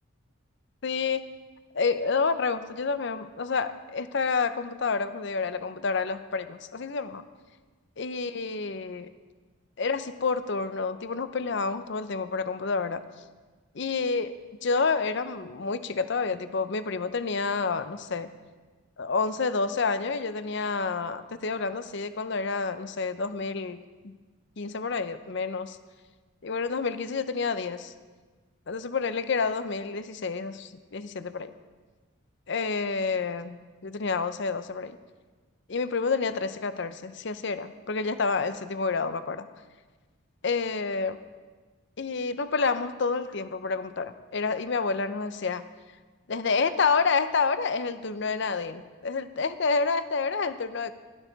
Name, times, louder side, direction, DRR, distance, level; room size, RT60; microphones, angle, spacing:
voice 1, 0.8-1.2 1.7-7.2 8.0-9.1 9.8-13.0 13.8-14.3 14.6-18.3 19.0-24.2 24.6-25.8 26.4-27.9 28.7-31.5 32.5-33.6 33.8-35.0 35.7-39.5 40.4-41.2 42.0-45.6 46.3-50.9, left 4 dB, 55° left, 12 dB, 0.6 m, -29 dB
16.5 x 12.0 x 4.0 m, 1.3 s
head